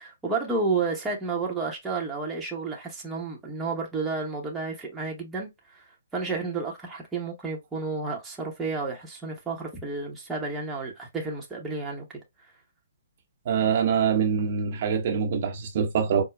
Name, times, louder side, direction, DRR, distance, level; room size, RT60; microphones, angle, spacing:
voice 1, 0.0-5.8 6.1-12.1, right 4 dB, 10° right, 0.9 m, -31 dB
voice 2, 13.5-16.2, right 7 dB, 50° right, 0.8 m, -24 dB
4.5 x 2.1 x 2.2 m
hypercardioid pair, 140°, 0 cm